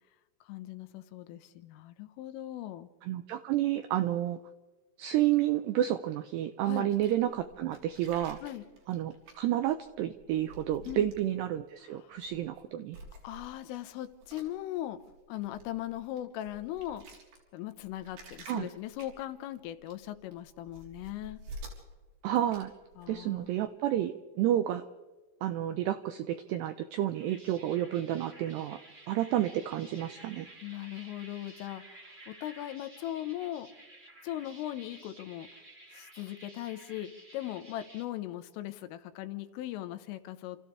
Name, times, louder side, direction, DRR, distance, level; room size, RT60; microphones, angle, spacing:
voice 1, 0.5-2.9 6.6-6.9 8.4-8.6 10.9-11.1 11.8-12.2 13.2-15.0 15.3-17.1 17.5-21.4 23.0-23.5 30.6-31.8 32.3-33.7 34.2-35.5 35.9-40.6, left 13 dB, 85° left, 10 dB, 3.6 m, -39 dB
voice 2, 3.1-4.4 5.0-8.4 8.9-13.0 18.5-18.7 22.2-22.7 23.1-24.8 25.4-28.8 29.1-30.5, right 12 dB, 90° right, 10 dB, 2.4 m, -30 dB
sound 1, 6.9-11.7 12.1-12.6 12.9-23.6, right 1 dB, 55° right, 5.4 m, -51 dB
sound 2, 27.0-38.1, right 1 dB, 20° right, 2.3 m, -53 dB
29.5 x 28.0 x 3.4 m, 1.2 s
omnidirectional pair, 5.8 m